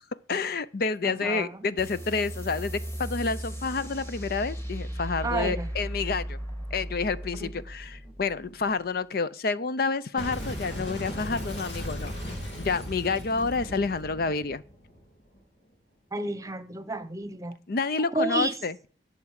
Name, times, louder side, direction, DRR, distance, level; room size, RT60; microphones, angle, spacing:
voice 1, 0.3-6.4 6.7-12.2 12.6-14.6 17.7-18.7, left 4 dB, 55° left, 0.5 m, -29 dB
voice 2, 1.0-1.5 5.2-5.7 16.1-17.5 18.1-18.5, right 2 dB, 20° right, 1.0 m, -30 dB
sound 1, 1.8-8.9, equal, 15° left, 2.0 m, -36 dB
Boom, 10.2-15.4, equal, 80° left, 3.2 m, -36 dB
12.0 x 7.1 x 6.4 m
head